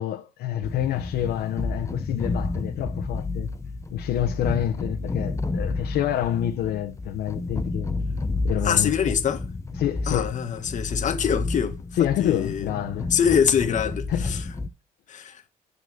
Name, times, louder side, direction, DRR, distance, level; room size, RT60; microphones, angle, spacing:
voice 1, 0.0-3.5 3.9-7.9 8.4-8.9 9.8-10.4 12.0-13.1 14.1-14.4, left 11 dB, 70° left, 1.0 m, -27 dB
sound 1, 0.6-14.7, left 3 dB, 15° left, 0.7 m, -30 dB
voice 2, 8.6-9.4 10.1-12.7 13.1-14.4 15.1-15.4, left 8 dB, 45° left, 1.4 m, -24 dB
9.8 x 4.2 x 6.8 m
cardioid pair, 110°, 17 cm